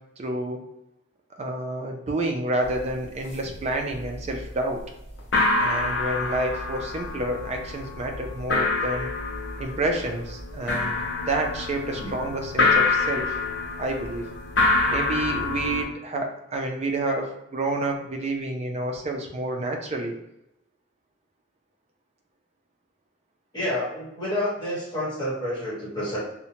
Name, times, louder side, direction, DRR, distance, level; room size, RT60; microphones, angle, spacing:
voice 1, 0.2-0.6 1.4-4.8 5.6-9.1 9.6-11.0 11.3-13.3 13.8-14.2 14.9-20.2, right 2 dB, 35° right, 2 dB, 0.4 m, -29 dB
sound 1, 2.6-2.8 3.0-3.6 3.9-4.5 4.8-4.9 5.2-15.8, left 3 dB, 70° left, 0.6 m, -26 dB
voice 2, 23.5-26.2, left 1 dB, 25° left, -7 dB, 1.1 m, -29 dB
2.7 x 2.1 x 2.8 m, 0.86 s
head